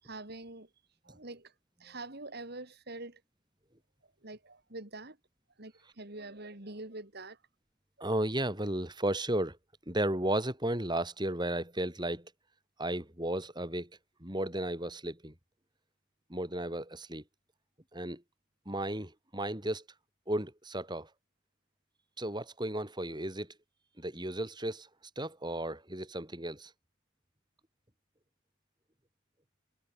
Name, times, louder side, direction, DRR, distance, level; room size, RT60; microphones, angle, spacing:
voice 1, 0.0-0.7 1.0-1.5 1.8-3.2 4.2-5.2 5.6-7.4 8.0-8.1, right 2 dB, 50° right, 3.0 m, -45 dB
voice 2, 8.0-9.6 9.9-12.3 12.8-13.9 14.2-15.3 16.3-17.2 17.9-18.2 18.7-19.8 20.3-21.1 22.2-23.5 24.0-24.9 25.2-26.7, right 1 dB, 20° right, 6.0 m, -34 dB
head